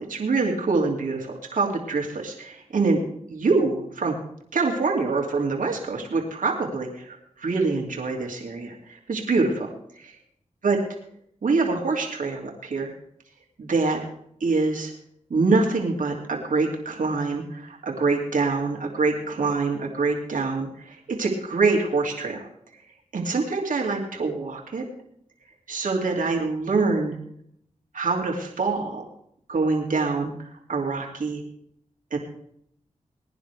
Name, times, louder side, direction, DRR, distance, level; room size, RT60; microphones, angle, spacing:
voice 1, 0.0-3.0 3.3-4.1 4.5-9.7 10.0-10.1 10.6-10.8 11.4-12.9 13.6-14.0 14.4-14.9 15.3-22.5 23.1-24.8 25.7-27.2 27.9-29.1 29.5-30.3 30.7-31.4 32.1-32.2, right 3 dB, 80° right, 0 dB, 2.7 m, -25 dB
21.0 x 10.0 x 3.4 m, 0.69 s
cardioid pair, 50°, 13 cm